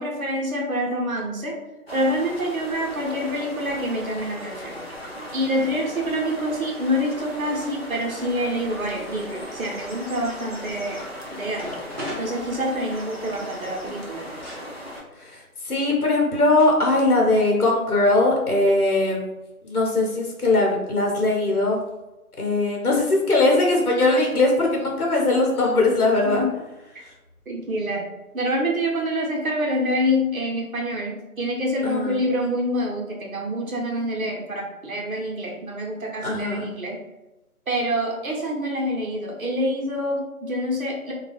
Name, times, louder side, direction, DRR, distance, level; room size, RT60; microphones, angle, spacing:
voice 1, 0.0-1.6 1.9-4.8 5.3-11.0 11.3-11.8 12.2-14.3 26.2-26.5 27.5-37.0 37.7-41.1, equal, 65° right, -1 dB, 0.9 m, -26 dB
sound 1, 1.9-15.0, equal, 45° left, 0.5 m, -37 dB
sound 2, 11.5-13.2 14.4-14.7 15.8-15.9 16.6-16.8 17.1-17.6, left 1 dB, 30° right, 0.9 m, -36 dB
voice 2, 15.2-19.2 19.6-21.8 22.4-26.4 31.8-32.2 36.2-36.7, left 2 dB, 75° left, -1 dB, 1.1 m, -20 dB
2.3 x 2.2 x 3.3 m, 1.0 s
figure-of-eight pair, 170°, 45 cm